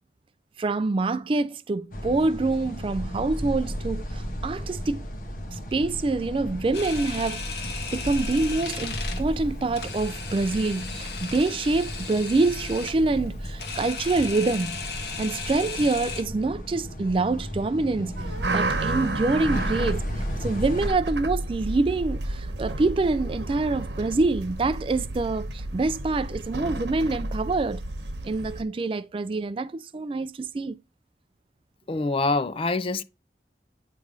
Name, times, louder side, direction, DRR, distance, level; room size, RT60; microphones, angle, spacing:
voice 1, 0.6-5.0 5.5-7.4 7.9-14.8 15.2-27.8 28.2-30.8, right 3 dB, 30° right, 0.3 m, -26 dB
sound 1, 1.9-20.9, equal, 50° left, 1.3 m, -35 dB
Camera, 6.7-16.2, left 4 dB, 70° left, 1.8 m, -36 dB
sound 2, 18.2-28.6, right 2 dB, 85° right, 1.1 m, -31 dB
voice 2, 31.9-33.0, left 3 dB, 30° left, 0.4 m, -25 dB
9.2 x 3.4 x 5.1 m
head